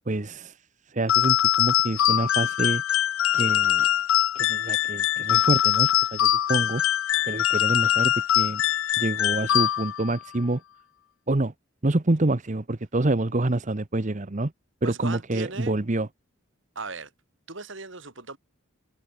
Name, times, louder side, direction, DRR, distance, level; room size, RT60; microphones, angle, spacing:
voice 1, 0.1-0.6 0.9-2.8 3.3-3.9 4.3-6.8 7.2-8.6 9.0-10.6 11.3-11.5 11.8-14.5 14.8-16.1, right 2 dB, 35° right, 0.9 m, -27 dB
sound 1, 1.1-10.1, left 12 dB, 65° left, 0.3 m, -23 dB
voice 2, 14.8-15.7 16.8-17.1 17.5-18.4, right 3 dB, 60° right, 2.6 m, -37 dB
head